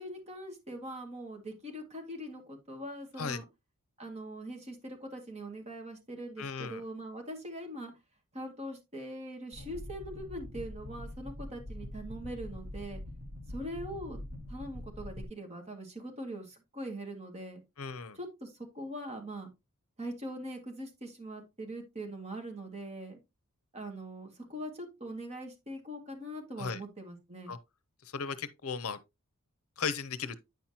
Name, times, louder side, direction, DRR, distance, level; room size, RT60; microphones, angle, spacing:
voice 1, 0.0-3.4 4.0-7.9 8.3-13.0 13.5-14.2 14.5-17.6 18.1-19.5 20.0-23.2 23.7-27.5, right 1 dB, 30° right, 1.9 m, -42 dB
voice 2, 6.4-6.8 17.8-18.2 26.6-26.8 27.5-27.6 28.1-29.0 29.8-30.4, left 5 dB, 70° left, 0.7 m, -36 dB
sound 1, 9.5-15.2, left 1 dB, 80° right, 1.9 m, -43 dB
9.3 x 5.8 x 2.8 m
head